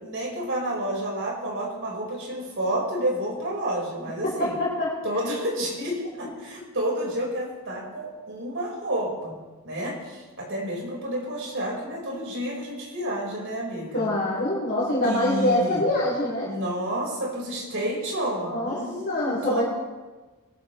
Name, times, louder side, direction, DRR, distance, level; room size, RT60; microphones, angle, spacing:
voice 1, 0.0-4.5 5.0-9.3 9.6-14.1 15.0-15.8 16.4-19.6, right 1 dB, 60° right, -2 dB, 5.0 m, -30 dB
voice 2, 4.2-4.9 13.9-16.5 18.4-18.8 19.1-19.6, left 1 dB, 45° left, -9 dB, 4.6 m, -24 dB
22.5 x 13.0 x 3.3 m, 1.2 s
head